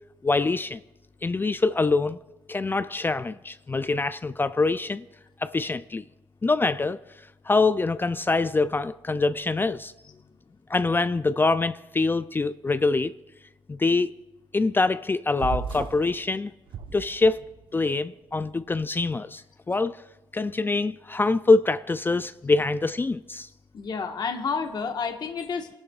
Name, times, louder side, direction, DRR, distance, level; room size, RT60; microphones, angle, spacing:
voice 1, 0.2-0.8 1.2-2.2 2.5-5.0 5.4-6.0 6.4-7.0 7.5-9.9 10.7-13.1 13.7-14.1 14.5-16.5 16.9-17.4 17.7-19.4 19.7-20.0 20.3-23.5, left 3 dB, 25° left, 0.4 m, -24 dB
sound 1, 15.4-16.1 16.7-17.6, right 6 dB, 70° right, 1.0 m, -34 dB
voice 2, 23.7-25.7, left 5 dB, 55° left, 1.4 m, -30 dB
29.5 x 12.0 x 2.4 m
supercardioid pair, 60°, 9 cm